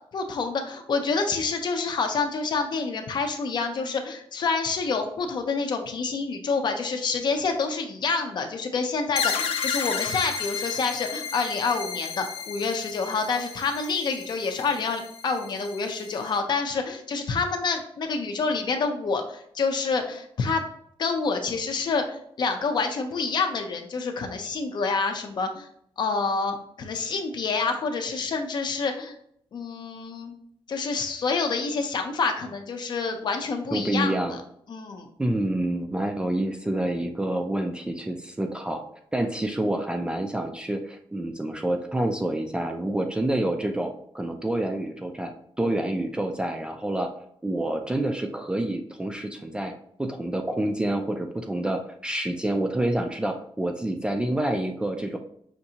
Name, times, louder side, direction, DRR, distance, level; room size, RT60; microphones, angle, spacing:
voice 1, 0.1-20.6 21.0-25.7 26.0-29.1 29.5-30.3 30.7-34.4 34.7-35.1, left 4 dB, 50° left, 5 dB, 0.6 m, -27 dB
sound 1, 9.1-16.4, left 6 dB, 85° left, 0.5 m, -33 dB
voice 2, 33.7-34.4 35.2-38.8 39.1-47.1 47.4-49.7 50.0-55.2, right 1 dB, 10° right, 4 dB, 0.3 m, -28 dB
5.8 x 2.6 x 2.8 m, 0.68 s
wide cardioid pair, 155°, 10 cm